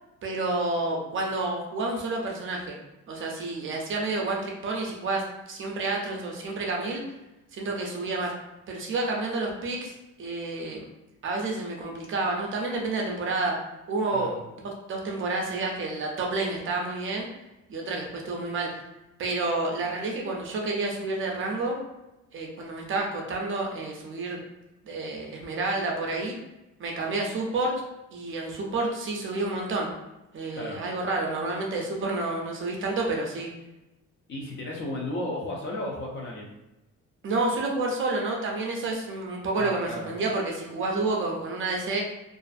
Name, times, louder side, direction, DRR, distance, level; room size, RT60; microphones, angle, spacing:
voice 1, 0.2-2.8 3.1-7.0 7.5-8.3 8.7-10.9 11.2-13.6 13.9-17.3 17.7-18.7 19.2-21.8 22.3-24.4 24.8-26.4 26.8-27.8 28.1-29.9 30.3-33.5 37.2-42.0, right 2 dB, 40° right, 0 dB, 0.4 m, -29 dB
voice 2, 34.3-36.5 39.5-40.1, left 1 dB, 40° left, -1 dB, 0.5 m, -34 dB
2.5 x 2.4 x 2.4 m, 0.97 s
cardioid pair, 165°, 30 cm